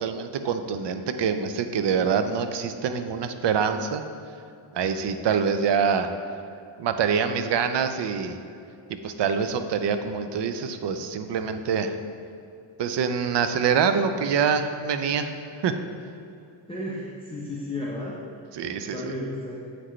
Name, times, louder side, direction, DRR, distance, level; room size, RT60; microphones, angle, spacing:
voice 1, 0.0-4.0 4.7-6.1 6.8-8.4 9.0-12.0 12.8-15.3 15.6-15.7 18.5-19.1, right 6 dB, 60° right, 8 dB, 0.6 m, -25 dB
voice 2, 16.7-18.2 18.8-19.6, left 1 dB, 10° left, -6 dB, 0.8 m, -33 dB
7.8 x 5.9 x 3.2 m, 2.5 s
wide cardioid pair, 115°, 50 cm